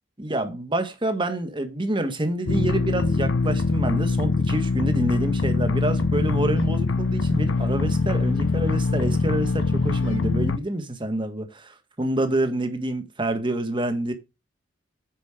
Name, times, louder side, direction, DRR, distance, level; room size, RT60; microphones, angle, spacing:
voice 1, 0.2-14.1, right 1 dB, 25° right, 1.6 m, -27 dB
sound 1, 2.5-10.6, left 3 dB, 80° left, 0.6 m, -23 dB
9.3 x 5.2 x 4.9 m
head